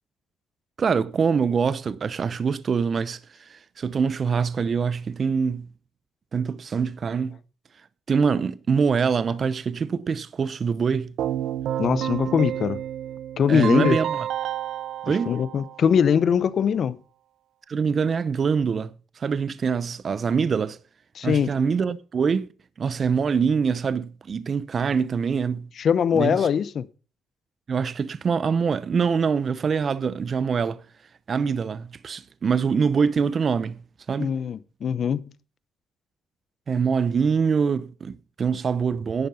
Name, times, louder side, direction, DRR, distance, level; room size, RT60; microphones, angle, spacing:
voice 1, 0.8-5.7 6.3-7.4 8.1-11.1 13.5-14.3 15.1-15.4 17.7-20.8 21.2-22.5 22.8-25.7 26.1-26.5 27.7-30.8 31.3-33.8 34.1-34.3 36.7-39.3, right 6 dB, 45° right, 0.7 m, -24 dB
Keyboard (musical), 11.2-16.2, right 10 dB, 80° right, 0.7 m, -30 dB
voice 2, 11.8-12.8 13.4-14.0 15.1-17.0 21.1-21.5 25.8-26.9 34.2-35.2, left 7 dB, 55° left, 0.7 m, -22 dB
11.0 x 9.3 x 5.6 m
cardioid pair, 90°, 0 cm